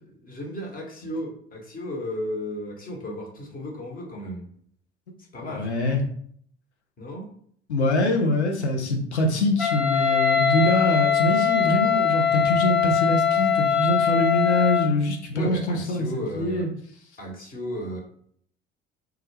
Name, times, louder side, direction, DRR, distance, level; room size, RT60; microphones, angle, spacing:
voice 1, 0.0-4.4 5.3-5.7 7.0-7.3 15.3-16.7 17.2-18.0, equal, 25° left, 0 dB, 0.9 m, -34 dB
voice 2, 5.5-6.0 7.7-16.1 16.3-16.7, left 1 dB, 90° left, 2 dB, 0.5 m, -24 dB
Wind instrument woodwind instrument, 9.6-14.9, left 8 dB, 5° right, 0.5 m, -22 dB
2.2 x 2.1 x 3.1 m, 0.63 s
figure-of-eight pair, 60°, 33 cm